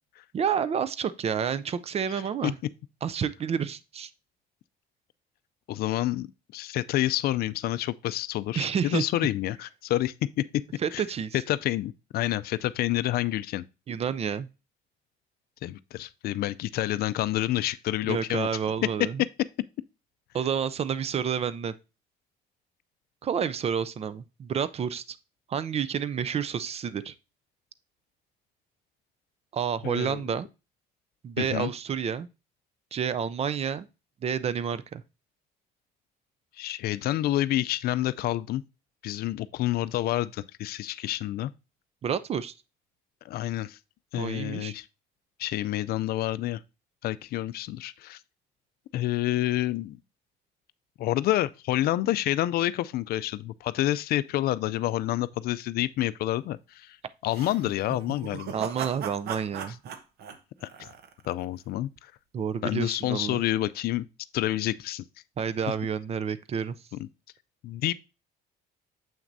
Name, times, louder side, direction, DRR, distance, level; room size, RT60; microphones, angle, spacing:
voice 1, 0.3-2.5 3.0-4.1 8.6-9.0 10.8-11.4 13.9-14.5 18.1-19.2 20.3-21.7 23.2-25.2 25.5-27.1 29.5-30.5 31.2-32.3 32.9-33.9 34.2-35.0 42.0-42.5 44.1-44.7 58.5-59.8 62.3-63.4 65.4-66.7, right 7 dB, 40° right, 0.5 m, -29 dB
voice 2, 2.1-2.5 5.7-6.3 6.5-10.4 10.9-11.0 11.5-13.7 15.6-18.5 29.8-30.2 31.4-31.7 36.6-38.6 39.0-41.5 43.2-43.8 44.1-44.9 45.4-46.6 47.0-48.2 48.9-50.0 51.0-57.0 57.2-58.5 60.6-60.9 61.3-62.1 62.6-64.1 64.3-65.0 67.6-67.9, left 14 dB, 65° left, 0.4 m, -28 dB
sound 1, 57.3-61.4, right 7 dB, 70° right, 1.0 m, -38 dB
7.3 x 5.9 x 2.6 m
cardioid pair, 110°, 17 cm